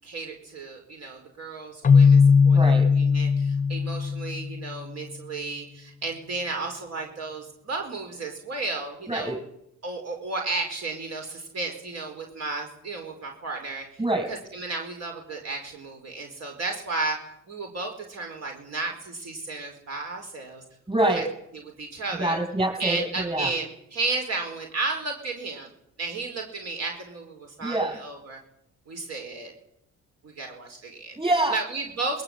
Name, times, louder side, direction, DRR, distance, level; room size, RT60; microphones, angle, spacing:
voice 1, 0.0-9.3 9.8-13.9 14.3-17.2 17.5-20.6 21.1-21.2 21.8-22.4 22.8-25.7 26.0-28.4 28.9-29.5 30.2-31.2 31.5-32.2, right 3 dB, 60° right, 3 dB, 4.7 m, -33 dB
Keyboard (musical), 1.8-4.7, left 5 dB, 25° left, 0.8 m, -18 dB
voice 2, 2.4-2.9 9.1-9.4 14.0-14.3 20.9-21.3 22.2-23.5 27.6-28.0 31.2-31.6, right 1 dB, 20° right, 2 dB, 7.8 m, -25 dB
22.0 x 21.0 x 7.9 m, 0.77 s
cardioid pair, 90°, 30 cm